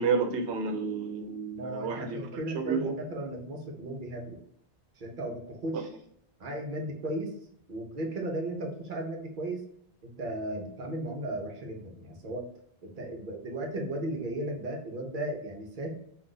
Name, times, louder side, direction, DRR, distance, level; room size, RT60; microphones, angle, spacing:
voice 1, 0.0-2.9, right 5 dB, 80° right, 4 dB, 0.9 m, -30 dB
voice 2, 1.5-4.4 5.0-5.9 6.4-7.3 7.7-9.6 10.0-12.5 12.8-15.9, right 1 dB, 50° right, 0 dB, 0.8 m, -35 dB
2.5 x 2.4 x 3.7 m, 0.68 s
omnidirectional pair, 1.1 m